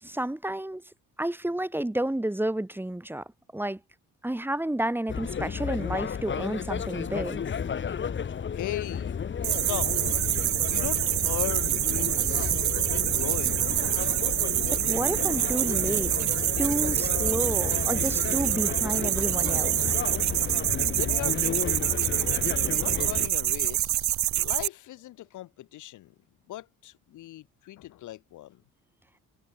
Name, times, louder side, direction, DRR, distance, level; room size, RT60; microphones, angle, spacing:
voice 1, 0.0-0.8 1.2-3.2 3.5-3.8 4.2-7.4 14.7-16.3 16.6-19.9, right 1 dB, 5° right, 1.5 m, -31 dB
sound 1, 5.1-23.3, left 7 dB, 40° left, 1.4 m, -32 dB
voice 2, 8.5-9.1 9.4-9.9 10.6-12.5 12.9-13.9 21.0-22.0 22.8-26.1 26.5-28.6, left 15 dB, 80° left, 1.4 m, -38 dB
sound 2, 9.4-24.7, right 13 dB, 65° right, 0.9 m, -26 dB
cardioid pair, 90°, 30 cm